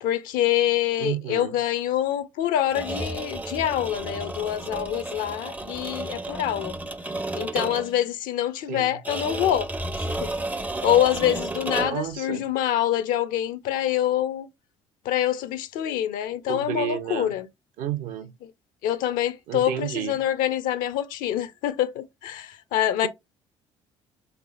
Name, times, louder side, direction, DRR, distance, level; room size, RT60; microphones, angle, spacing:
voice 1, 0.0-6.7 7.3-9.7 10.0-10.3 10.8-14.5 15.0-17.5 18.4-18.5 18.8-23.1, left 11 dB, 60° left, 0.5 m, -25 dB
voice 2, 1.0-1.6 8.7-8.9 11.8-12.4 16.5-17.4 17.8-18.3 19.5-20.2, right 11 dB, 60° right, 0.6 m, -31 dB
sound 1, 2.6-8.0 9.0-12.1, right 2 dB, 10° right, 0.5 m, -32 dB
3.3 x 3.3 x 2.4 m
figure-of-eight pair, 50°, 16 cm